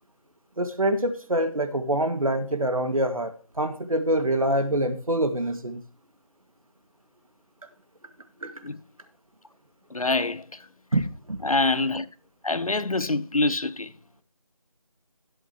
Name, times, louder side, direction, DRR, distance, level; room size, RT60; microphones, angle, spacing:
voice 1, 0.6-5.8 8.4-8.5 10.9-11.4, right 1 dB, 75° right, 2.1 m, -25 dB
voice 2, 9.9-10.4 11.4-12.1 12.4-13.9, left 2 dB, 75° left, 1.0 m, -25 dB
15.5 x 8.0 x 3.1 m
figure-of-eight pair, 175°, 18 cm